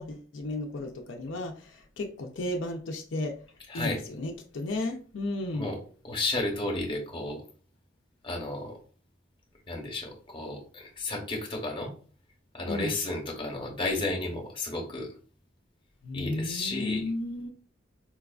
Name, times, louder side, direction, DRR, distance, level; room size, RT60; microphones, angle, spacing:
voice 1, 0.0-3.3 3.7-5.7 12.7-12.9 16.0-17.5, left 2 dB, 70° left, 3 dB, 0.5 m, -34 dB
voice 2, 3.7-4.0 5.5-5.8 6.0-7.4 8.2-8.8 9.7-11.9 12.5-15.1 16.1-17.1, left 2 dB, 25° left, 0 dB, 0.8 m, -32 dB
4.5 x 2.3 x 2.3 m, 0.40 s
head